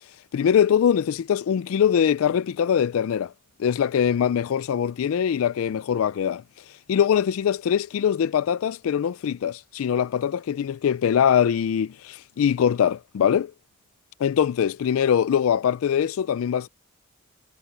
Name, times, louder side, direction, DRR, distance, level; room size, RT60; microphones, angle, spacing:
voice 1, 0.3-3.3 3.6-6.4 6.9-13.5 14.2-16.7, left 8 dB, 75° left, 0.3 m, -22 dB
head